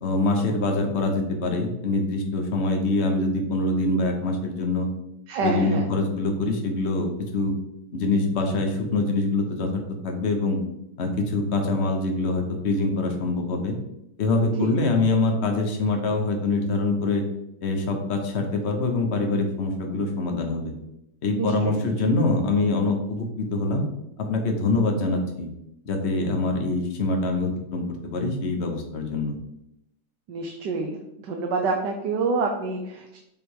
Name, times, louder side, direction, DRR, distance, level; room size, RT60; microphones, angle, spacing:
voice 1, 0.0-4.9 5.4-7.6 7.9-10.6 11.0-13.8 14.2-17.2 17.6-20.7 21.2-23.9 24.2-25.5 25.8-29.4, left 2 dB, 45° left, 3 dB, 1.2 m, -24 dB
voice 2, 5.3-5.8 14.6-14.7 21.4-21.8 30.3-31.0 31.3-33.2, right 4 dB, 80° right, 2 dB, 1.4 m, -27 dB
7.2 x 3.4 x 4.8 m, 0.83 s
omnidirectional pair, 1.8 m